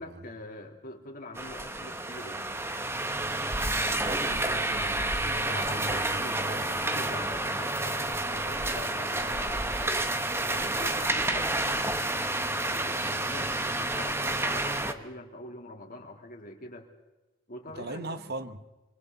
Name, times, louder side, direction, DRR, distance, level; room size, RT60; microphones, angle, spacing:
voice 1, 0.0-2.5 5.2-10.0 10.5-12.0 12.5-16.9 17.5-18.3, left 1 dB, 45° left, 3.7 m, -44 dB
sound 1, 1.4-14.9, right 2 dB, 15° right, 1.3 m, -29 dB
voice 2, 3.5-7.2 17.8-18.6, right 2 dB, 55° right, 1.4 m, -40 dB
26.0 x 26.0 x 4.2 m
head